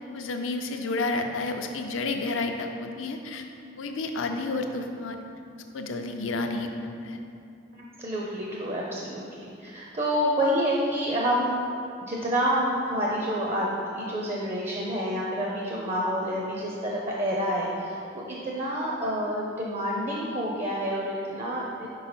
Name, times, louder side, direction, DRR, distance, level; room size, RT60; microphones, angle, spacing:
voice 1, 0.1-3.5 3.8-5.2 5.7-6.7 7.0-7.2, left 3 dB, 85° left, 4 dB, 0.5 m, -30 dB
voice 2, 7.7-11.6 12.0-13.7 14.0-21.9, equal, 35° right, -3 dB, 0.5 m, -28 dB
5.5 x 4.5 x 4.3 m, 2.5 s
head